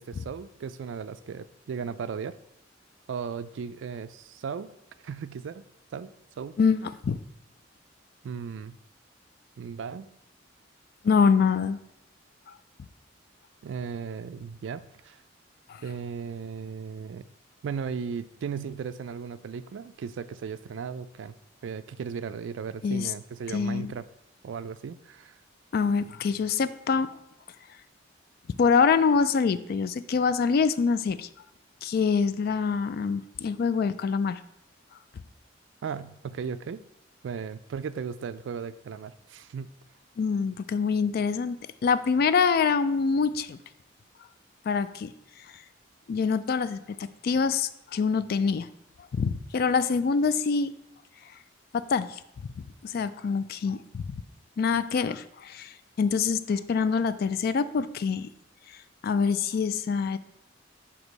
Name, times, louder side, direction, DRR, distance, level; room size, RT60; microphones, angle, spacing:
voice 1, 0.0-2.4 3.1-4.7 5.0-5.6 5.9-6.1 6.4-6.6 8.2-8.8 9.6-10.1 13.6-15.2 15.8-17.2 17.6-21.3 21.6-24.1 24.4-25.4 35.8-36.8 37.2-39.7, right 6 dB, 65° right, 13 dB, 0.3 m, -36 dB
voice 2, 6.6-7.2 11.0-11.8 15.7-15.8 22.8-23.1 23.5-23.9 25.7-27.1 28.6-31.3 31.8-34.4 40.2-41.6 41.8-43.6 44.7-45.1 46.1-48.7 49.1-50.7 51.7-52.1 52.8-54.0 54.6-58.3 59.0-60.2, left 5 dB, 50° left, 14 dB, 0.3 m, -25 dB
6.2 x 2.9 x 5.2 m, 0.82 s
head